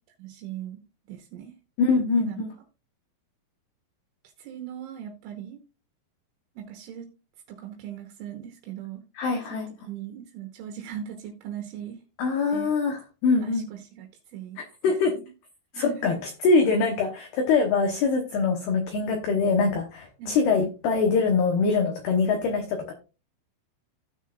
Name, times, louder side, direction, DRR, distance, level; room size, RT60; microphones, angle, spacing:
voice 1, 0.2-0.8 1.1-1.5 2.2-2.4 4.4-5.6 6.6-7.1 7.5-9.0 9.5-12.0 12.5-12.7 13.4-14.6 15.0-15.3 15.7-16.1 20.2-20.4, right 10 dB, 80° right, 3 dB, 3.4 m, -39 dB
voice 2, 1.8-2.5 9.2-9.7 12.2-13.6 14.8-15.1 15.7-16.1 16.4-22.9, left 4 dB, 70° left, 4 dB, 2.5 m, -23 dB
16.0 x 6.3 x 2.5 m, 0.31 s
omnidirectional pair, 6.0 m